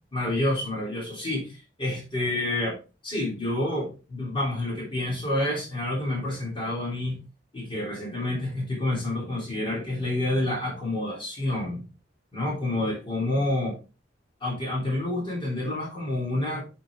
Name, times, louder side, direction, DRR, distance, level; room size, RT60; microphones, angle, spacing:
voice 1, 0.1-7.2 7.5-11.9 12.3-13.8 14.4-16.7, left 1 dB, 30° left, -4 dB, 3.6 m, -28 dB
8.9 x 4.7 x 3.7 m, 0.31 s
head